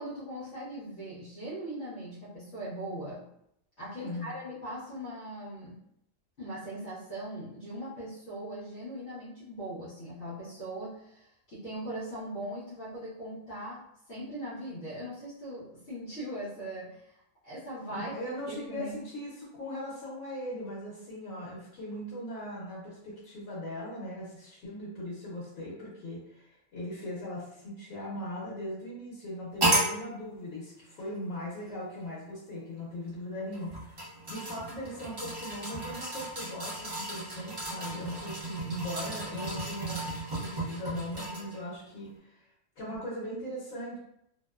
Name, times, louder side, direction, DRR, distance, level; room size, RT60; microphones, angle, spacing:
voice 1, 0.0-3.2 3.8-5.8 6.4-13.8 14.1-17.1 17.4-18.1 18.5-19.0, right 1 dB, 60° left, -11 dB, 1.1 m, -40 dB
voice 2, 4.0-4.4 17.9-40.0 40.3-42.5 42.8-44.0, left 1 dB, 85° left, -7 dB, 1.2 m, -39 dB
sound 1, 29.6-29.9 31.0-31.1 33.5-41.6 42.1-42.2, right 1 dB, 30° right, 0.5 m, -33 dB
2.8 x 2.0 x 2.2 m, 0.77 s
omnidirectional pair, 1.4 m